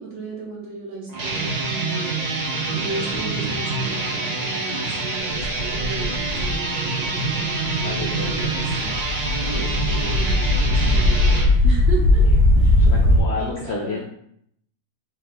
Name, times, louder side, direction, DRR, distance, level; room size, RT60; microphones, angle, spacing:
voice 1, 0.0-2.2 2.7-12.3 12.5-12.9 13.3-14.0, right 4 dB, 65° right, -3 dB, 1.1 m, -35 dB
sound 1, 1.1-11.5, right 3 dB, 50° right, 0.5 m, -26 dB
sound 2, 5.4-6.5 7.2-7.3 7.6-13.2, left 1 dB, 85° right, 1.3 m, -19 dB
voice 2, 7.8-8.6 12.8-14.0, left 4 dB, 70° left, 0 dB, 0.6 m, -30 dB
3.6 x 2.8 x 3.4 m, 0.70 s
omnidirectional pair, 1.6 m